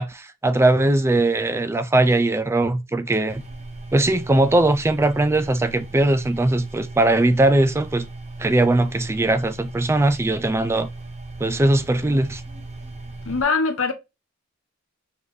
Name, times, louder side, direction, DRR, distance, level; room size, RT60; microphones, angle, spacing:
voice 1, 0.0-3.4 3.9-8.1 8.4-10.9 11.4-12.4, right 2 dB, 15° right, 0.4 m, -20 dB
sound 1, 3.3-13.4, right 2 dB, 35° right, 1.0 m, -37 dB
voice 2, 13.2-13.9, left 4 dB, 90° left, 1.0 m, -22 dB
4.8 x 3.5 x 2.6 m
head